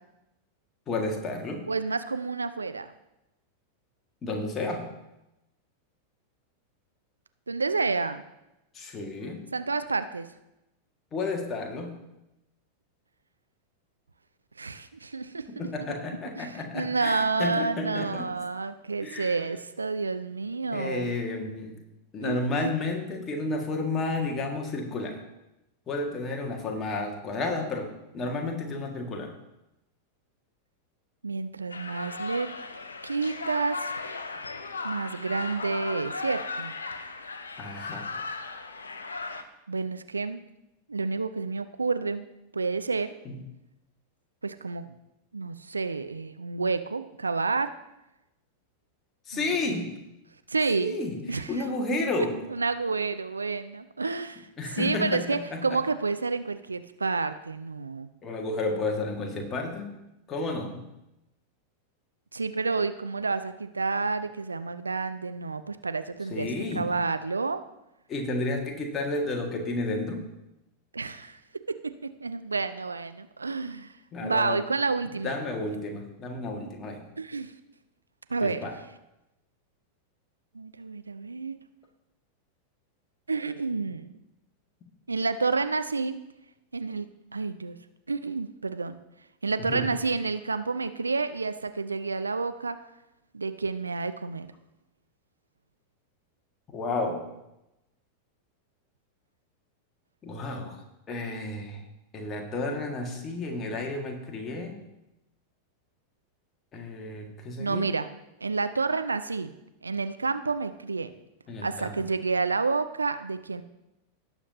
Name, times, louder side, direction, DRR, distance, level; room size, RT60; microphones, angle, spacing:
voice 1, 0.9-1.7 4.2-4.9 8.7-9.5 11.1-12.0 15.5-18.3 19.0-19.4 20.7-21.8 22.1-25.2 25.9-29.4 37.6-38.1 43.2-43.4 49.3-50.0 50.8-52.4 54.0-54.1 54.6-55.8 58.2-60.0 60.3-60.8 66.3-66.9 68.1-70.3 74.1-74.6 75.2-77.0 78.4-78.8 89.6-89.9 96.7-97.3 100.2-101.8 102.1-104.8 106.7-107.9 111.5-112.1, left 2 dB, 25° left, 2 dB, 1.7 m, -32 dB
voice 2, 1.7-2.9 7.5-8.2 9.5-10.3 14.6-15.5 16.4-21.1 22.2-22.7 31.2-32.5 33.0-33.9 34.8-36.7 39.7-40.4 40.9-42.2 42.5-43.1 44.4-44.8 45.3-47.7 50.5-51.0 51.3-51.5 52.5-54.5 54.7-58.1 62.3-66.5 66.7-67.6 70.9-71.4 72.0-73.9 74.2-75.3 77.2-77.5 78.3-78.7 80.5-81.6 83.3-84.2 85.1-86.2 86.7-87.1 87.3-87.8 88.1-89.0 89.4-92.8 93.3-94.5 107.6-108.1 108.4-109.5 109.8-111.1 111.6-113.6, right 4 dB, 80° right, 11 dB, 0.5 m, -29 dB
sound 1, 31.7-39.4, left 3 dB, 75° left, 0.7 m, -36 dB
17.5 x 7.1 x 2.7 m, 0.91 s
figure-of-eight pair, 90°, 0 cm